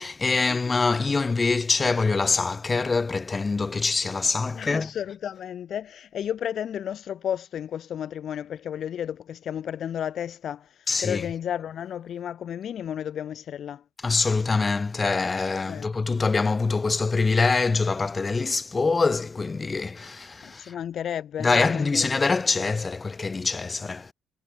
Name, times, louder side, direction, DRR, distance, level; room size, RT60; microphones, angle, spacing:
voice 1, 0.0-4.9 10.9-11.2 14.0-20.7 21.4-24.1, left 4 dB, 30° left, 0.7 m, -24 dB
voice 2, 4.5-13.8 15.7-15.9 20.4-22.1, left 9 dB, 65° left, 1.4 m, -33 dB
cardioid pair, 90°, 0 cm